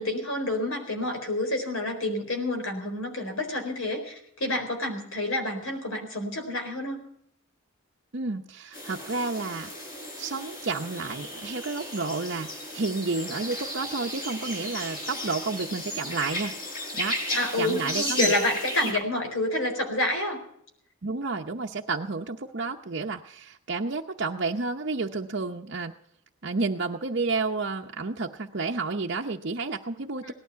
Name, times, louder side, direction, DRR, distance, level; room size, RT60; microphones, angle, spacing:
voice 1, 0.0-7.0 17.3-20.4 30.2-30.3, left 1 dB, 75° left, 4 dB, 4.4 m, -29 dB
voice 2, 8.1-9.7 10.2-16.5 16.9-18.4 18.8-18.9 21.0-25.9 26.4-30.3, right 3 dB, 55° right, 1 dB, 0.8 m, -31 dB
sound 1, 8.7-18.9, equal, 40° left, 5.4 m, -34 dB
18.0 x 12.0 x 5.7 m, 0.68 s
head